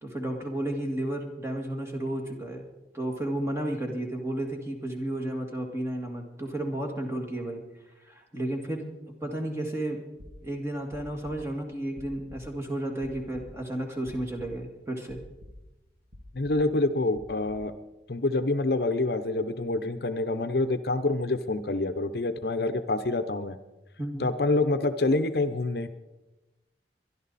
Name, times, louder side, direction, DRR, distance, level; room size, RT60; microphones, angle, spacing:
voice 1, 0.0-2.7 2.9-7.6 8.0-8.9 9.2-10.0 10.4-15.2 24.0-24.3, right 1 dB, 15° right, 2 dB, 2.1 m, -32 dB
sound 1, 10.2-14.8 15.1-15.8 16.1-16.7 17.1-17.7, left 1 dB, 75° right, 2.5 m, -48 dB
voice 2, 16.3-17.7 18.1-23.6 24.2-25.9, left 2 dB, 60° left, 10 dB, 0.7 m, -27 dB
24.0 x 11.5 x 4.2 m, 1.0 s
head